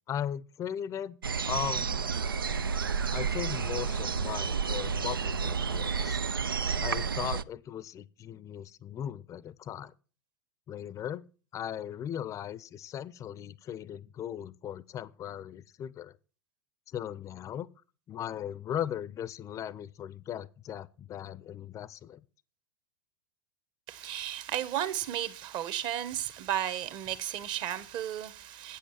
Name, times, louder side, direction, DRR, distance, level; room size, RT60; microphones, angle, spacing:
voice 1, 0.1-1.2 1.5-2.0 3.1-6.2 6.8-9.9 10.7-11.2 11.5-16.1 16.9-17.7 18.1-22.2, left 10 dB, 25° left, 0.5 m, -38 dB
sound 1, 1.2-7.4, right 5 dB, 90° right, 0.5 m, -31 dB
voice 2, 23.9-28.8, right 11 dB, 40° right, 1.2 m, -34 dB
8.4 x 8.3 x 7.4 m
hypercardioid pair, 95°, 11 cm